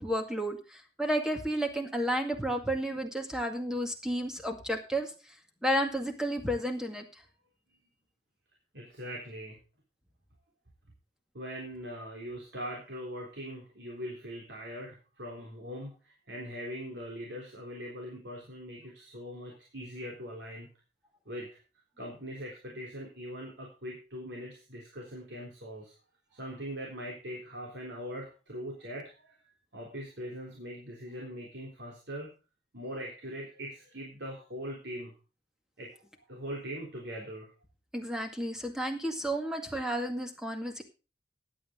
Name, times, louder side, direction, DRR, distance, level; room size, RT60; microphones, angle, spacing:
voice 1, 0.0-5.1 5.6-7.0 37.9-40.8, equal, 5° right, 4 dB, 2.1 m, -32 dB
voice 2, 8.7-9.6 11.3-20.7 21.3-21.5 22.0-25.9 26.3-32.3 32.7-35.1 35.8-36.0 36.3-37.5, equal, 80° right, -1 dB, 3.7 m, -41 dB
15.5 x 10.0 x 3.8 m, 0.32 s
head